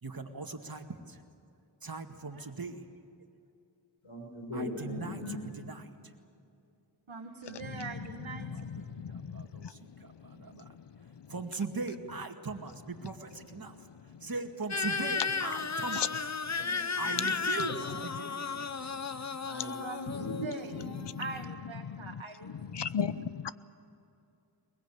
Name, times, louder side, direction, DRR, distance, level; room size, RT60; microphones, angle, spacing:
voice 1, 0.0-1.2 1.8-2.8 4.5-6.1 8.3-8.6 9.1-10.7 11.3-13.9 14.2-16.3 17.0-18.4, right 3 dB, 50° right, 2.1 m, -40 dB
voice 2, 4.0-5.4 5.8-6.1 7.4-7.9 8.3-8.7 16.6-17.4 17.8-17.9 18.4-18.6 19.4-19.8 20.1-21.0, left 1 dB, 85° left, 7.0 m, -41 dB
voice 3, 7.1-8.9 19.8-20.1 20.4-20.8 21.2-22.9 23.1-23.2, right 4 dB, 75° right, 1.8 m, -43 dB
voice 4, 8.4-10.8 11.1-11.3 13.9-14.3 15.9-16.1 18.8-19.2 20.1-20.2 21.8-23.5, left 7 dB, 65° left, 0.8 m, -38 dB
sound 1, 14.7-21.4, left 5 dB, 35° left, 0.9 m, -34 dB
22.0 x 21.0 x 8.4 m
wide cardioid pair, 60°, 46 cm